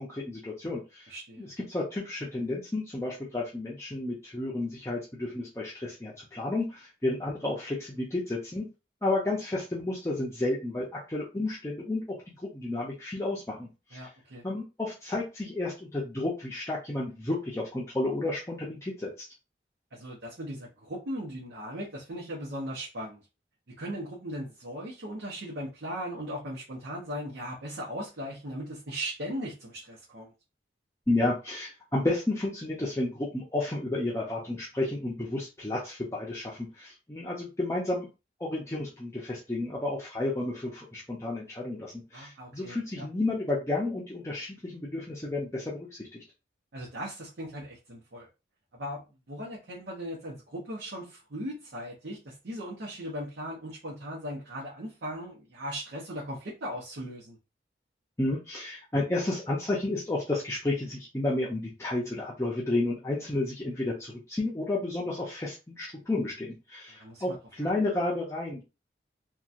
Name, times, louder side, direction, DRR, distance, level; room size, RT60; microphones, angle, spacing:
voice 1, 0.0-8.7 9.0-14.1 14.4-19.3 31.1-38.1 38.4-46.2 58.2-68.6, left 2 dB, 15° left, -4 dB, 0.5 m, -32 dB
voice 2, 1.1-1.5 13.9-14.4 19.9-23.2 23.8-30.3 42.1-43.1 46.7-48.3 48.7-49.0 49.3-57.4 67.0-67.4, equal, 80° right, -4 dB, 0.8 m, -38 dB
2.8 x 2.2 x 2.4 m, 0.28 s
head